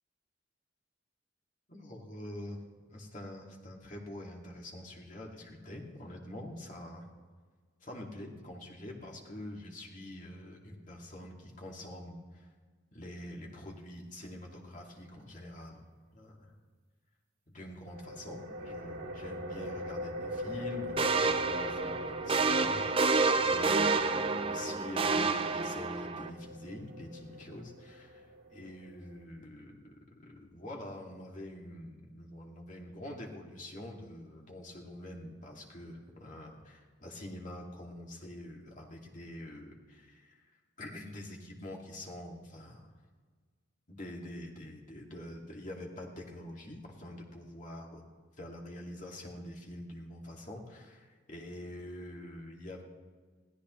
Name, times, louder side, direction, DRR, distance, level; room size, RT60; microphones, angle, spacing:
voice 1, 1.7-2.6 2.9-7.0 7.8-12.5 12.9-15.8 16.1-16.5 17.5-40.5 40.8-42.9 43.9-48.0 48.4-52.8, left 1 dB, 40° left, -1 dB, 2.3 m, -46 dB
sound 1, 17.9-29.2, left 1 dB, 85° right, 2.0 m, -42 dB
sound 2, 21.0-26.3, right 4 dB, 25° right, 0.6 m, -29 dB
22.0 x 15.0 x 3.2 m, 1.5 s
head